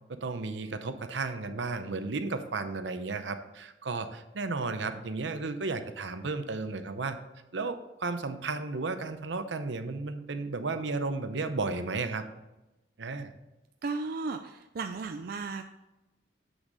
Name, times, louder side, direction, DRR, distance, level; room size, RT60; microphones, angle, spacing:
voice 1, 0.1-7.2 7.5-12.2 13.0-13.3, right 3 dB, 80° right, 9 dB, 0.8 m, -33 dB
voice 2, 13.8-15.6, right 4 dB, 55° right, 6 dB, 0.4 m, -35 dB
8.0 x 6.2 x 4.0 m, 0.99 s
head